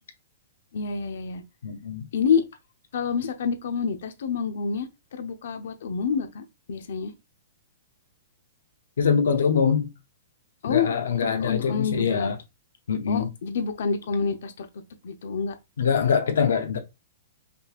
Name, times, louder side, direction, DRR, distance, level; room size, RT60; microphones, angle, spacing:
voice 1, 0.7-1.4 2.1-2.4 2.9-6.4 6.7-7.1 10.6-10.9 11.2-12.3 13.1-14.7 15.0-15.5, left 6 dB, 70° left, 0.8 m, -27 dB
voice 2, 1.6-2.1 9.0-9.9 10.7-12.4 12.9-13.3 15.8-16.8, left 6 dB, 90° left, 1.0 m, -23 dB
5.2 x 3.0 x 2.4 m
hypercardioid pair, 160°, 0 cm